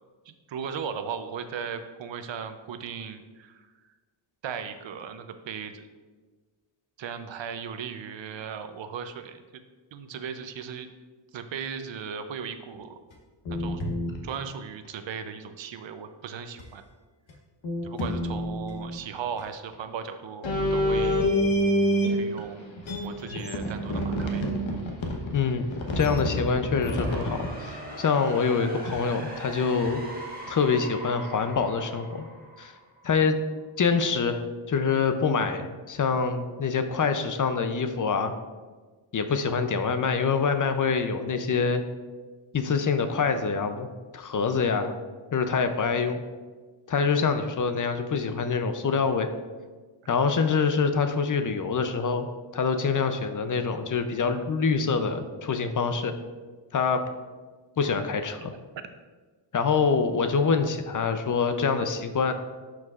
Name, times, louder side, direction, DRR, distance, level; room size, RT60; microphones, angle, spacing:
voice 1, 0.3-3.7 4.4-5.8 7.0-9.4 9.9-10.9 11.3-12.9 13.5-13.8 14.2-16.8 17.8-21.2 22.1-22.7 23.0-24.4 58.4-58.5, right 7 dB, 70° right, 9 dB, 0.6 m, -37 dB
sound 1, 13.1-13.2 13.4-14.2 16.6-16.7 17.3-17.4 17.6-19.0 19.4-19.5 20.4-22.4 22.8-27.5 28.9-29.0 29.9-30.0, equal, 75° left, 1.1 m, -27 dB
voice 2, 25.3-25.7 26.0-30.0 30.5-32.3 32.6-32.7 33.0-33.4 33.8-38.3 39.1-41.8 42.5-44.9 45.3-46.2 46.9-49.3 50.1-52.3 52.5-56.1 56.7-57.0 57.8-58.5 59.5-62.3, left 5 dB, 40° left, 8 dB, 0.5 m, -25 dB
sound 2, 26.5-33.4, right 1 dB, 20° right, 1.4 m, -41 dB
11.0 x 4.7 x 2.4 m, 1.4 s
wide cardioid pair, 115°, 47 cm